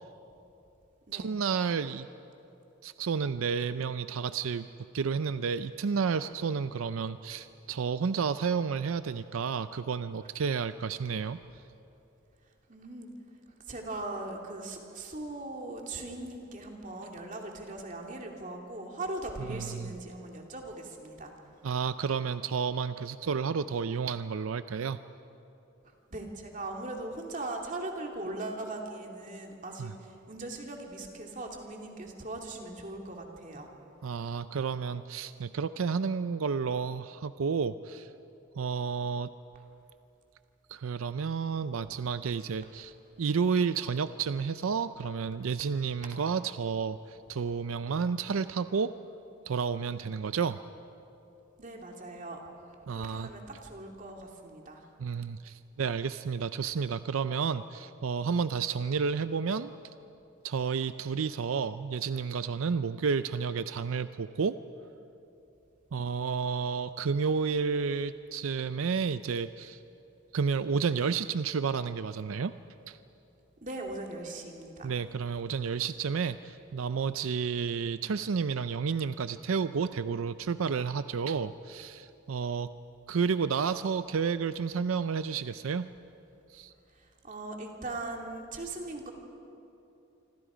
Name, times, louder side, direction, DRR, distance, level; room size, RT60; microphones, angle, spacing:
voice 1, 1.1-2.1 2.8-4.7 4.9-11.4 19.4-19.9 21.6-25.0 29.8-29.9 34.0-38.1 38.6-39.3 40.7-49.0 49.5-50.6 52.9-53.3 55.0-59.7 60.4-64.6 65.9-69.8 70.3-72.5 72.9-73.0 74.8-82.7 83.1-85.9 86.5-86.7, right 5 dB, 90° right, 12 dB, 0.5 m, -31 dB
voice 2, 12.7-13.1 13.7-21.3 26.1-33.7 51.6-52.4 52.9-54.9 73.6-74.9 87.0-89.1, right 2 dB, 40° right, 1 dB, 2.6 m, -40 dB
26.5 x 25.5 x 5.1 m, 2.8 s
head